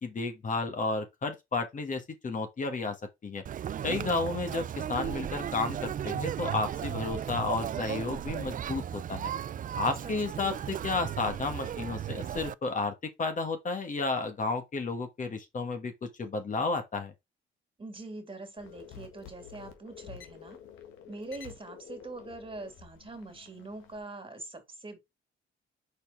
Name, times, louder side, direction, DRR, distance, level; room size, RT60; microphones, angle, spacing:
voice 1, 0.0-3.0 3.2-3.4 3.8-9.3 9.8-17.1, left 3 dB, 40° left, 1.6 m, -32 dB
Conversation, 3.4-12.5, right 9 dB, 45° right, 0.4 m, -35 dB
voice 2, 3.9-4.4 10.0-10.5 17.8-20.6 21.0-25.0, right 2 dB, 25° right, 2.5 m, -43 dB
sound 1, 18.6-24.0, left 8 dB, 90° left, 1.5 m, -49 dB
5.4 x 4.4 x 3.9 m
cardioid pair, 90°, 20 cm